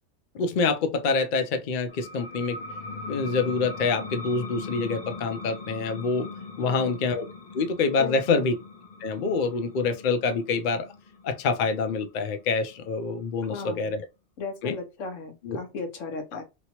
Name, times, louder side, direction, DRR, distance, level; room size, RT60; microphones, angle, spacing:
voice 1, 0.3-2.6 3.1-6.3 6.6-7.2 7.5-8.5 9.0-10.9 11.2-14.0 14.6-14.8 15.4-15.6, left 4 dB, 55° left, 0.6 m, -26 dB
sound 1, 1.9-13.2, left 3 dB, 40° left, 0.9 m, -40 dB
voice 2, 6.6-7.0 8.0-8.4 13.5-14.0 14.4-16.4, left 4 dB, 85° left, 1.2 m, -36 dB
3.0 x 2.8 x 2.9 m
omnidirectional pair, 1.3 m